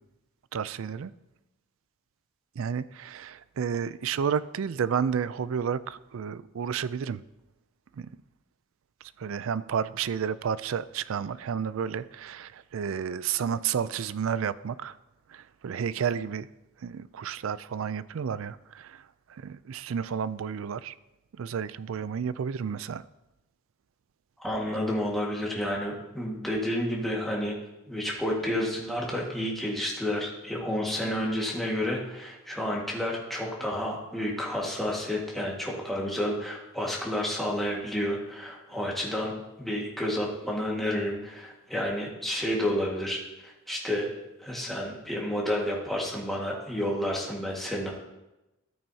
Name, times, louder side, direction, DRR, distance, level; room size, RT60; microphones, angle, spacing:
voice 1, 0.5-1.1 2.6-7.2 8.0-8.1 9.2-14.9 15.3-16.5 16.8-19.0 19.3-20.9 21.4-23.0, right 7 dB, 70° right, 17 dB, 0.4 m, -31 dB
voice 2, 24.4-27.5 27.9-39.3 39.6-44.1 44.4-47.9, left 1 dB, ahead, -4 dB, 1.7 m, -30 dB
13.5 x 8.8 x 2.8 m, 0.97 s
head